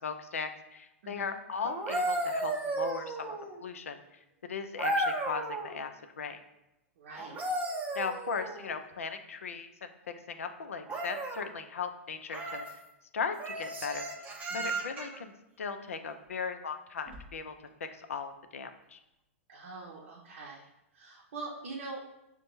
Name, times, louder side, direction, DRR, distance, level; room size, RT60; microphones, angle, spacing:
voice 1, 0.0-5.9 6.2-6.4 7.9-9.9 10.3-12.6 13.1-14.1 14.5-15.3 15.6-17.5 17.9-19.0, left 5 dB, 80° left, 8 dB, 0.4 m, -37 dB
voice 2, 1.0-1.4 7.0-7.4 14.5-14.8 19.5-20.7 20.9-22.0, right 3 dB, 70° right, -3 dB, 0.6 m, -43 dB
sound 1, 1.6-3.6 4.8-5.7 7.1-8.8 10.9-11.5 12.3-12.7 13.4-15.2 17.1-17.3, right 1 dB, 20° right, 0.6 m, -34 dB
5.2 x 2.1 x 3.0 m, 0.89 s
hypercardioid pair, 115°, 7 cm